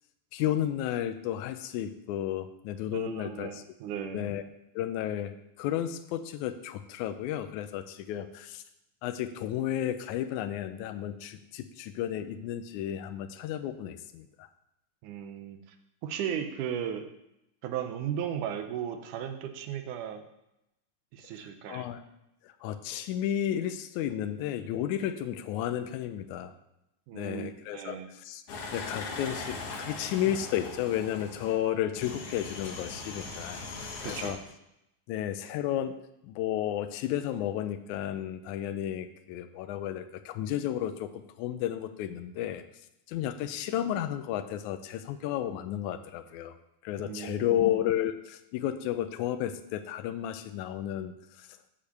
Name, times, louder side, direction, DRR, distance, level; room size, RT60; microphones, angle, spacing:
voice 1, 0.3-3.6 4.1-4.4 4.8-8.6 9.0-14.5 21.7-22.0 22.4-26.5 27.1-28.4 28.7-33.6 34.0-34.4 35.1-41.1 41.4-42.6 43.1-46.6 46.8-51.5, left 11 dB, 85° left, 9 dB, 2.0 m, -32 dB
voice 2, 2.9-4.3 15.0-15.6 16.0-17.1 17.6-20.2 21.1-21.9 27.1-28.1 34.0-34.4 47.0-47.7, right 9 dB, 90° right, 7 dB, 2.3 m, -36 dB
sound 1, 28.5-31.5 32.0-34.3, left 3 dB, 60° left, 2.0 m, -39 dB
8.4 x 5.0 x 6.9 m, 0.86 s
omnidirectional pair, 3.4 m